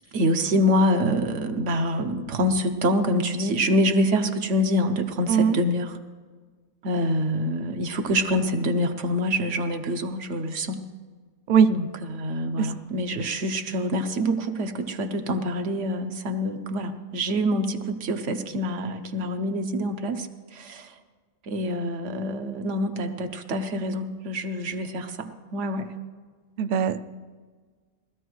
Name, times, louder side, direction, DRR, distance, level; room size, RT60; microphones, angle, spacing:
voice 1, 0.1-6.0 6.8-10.8 11.7-20.3 20.5-20.9 21.5-25.9, equal, 80° right, 6 dB, 1.2 m, -26 dB
voice 2, 26.6-27.0, right 7 dB, 65° right, 12 dB, 0.5 m, -20 dB
19.0 x 13.5 x 3.1 m, 1.5 s
omnidirectional pair, 1.2 m